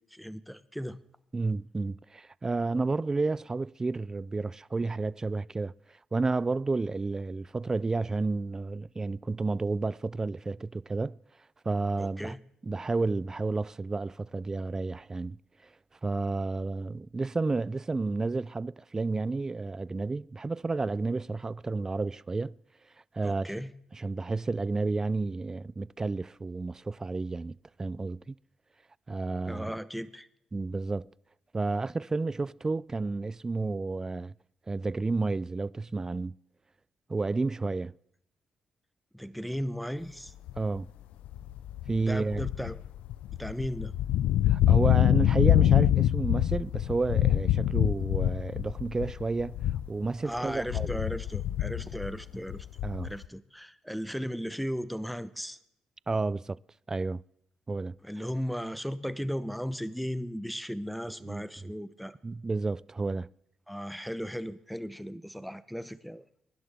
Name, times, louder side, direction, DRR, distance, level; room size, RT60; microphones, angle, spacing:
voice 1, 0.1-1.0 12.0-12.4 23.2-23.7 29.5-30.3 39.1-40.3 42.0-42.8 43.4-43.9 50.2-52.7 53.0-55.6 58.0-62.2 63.7-66.2, equal, ahead, 0.9 m, -36 dB
voice 2, 1.3-5.7 6.1-11.2 11.7-12.3 12.6-15.4 16.0-22.6 23.1-23.5 23.9-28.3 29.1-29.8 30.5-31.1 31.5-34.3 34.7-36.4 37.1-37.9 40.6-40.9 41.9-42.5 44.5-49.6 49.9-51.0 52.8-53.1 56.1-56.6 56.9-57.2 57.7-58.0 61.2-61.4 62.2-63.3, right 3 dB, 25° right, 0.4 m, -31 dB
sound 1, 40.5-40.8 41.2-50.1 50.4-53.3, left 12 dB, 85° left, 0.4 m, -25 dB
22.5 x 11.0 x 3.5 m
supercardioid pair, 60°, 2 cm